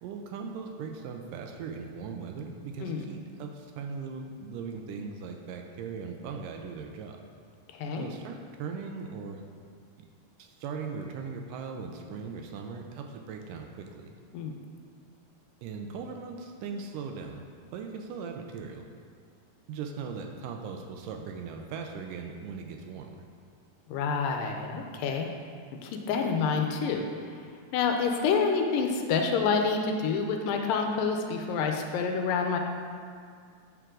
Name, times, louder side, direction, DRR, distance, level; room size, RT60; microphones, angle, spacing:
voice 1, 0.0-7.2 8.0-9.4 10.4-14.1 15.6-17.5 17.7-18.9 19.7-23.3, right 5 dB, 80° right, 3 dB, 2.1 m, -39 dB
voice 2, 7.7-8.1 14.3-14.5 23.9-25.3 25.8-27.0 27.7-32.6, left 5 dB, 85° left, 3 dB, 2.3 m, -28 dB
9.2 x 6.8 x 3.8 m, 2.1 s
omnidirectional pair, 4.0 m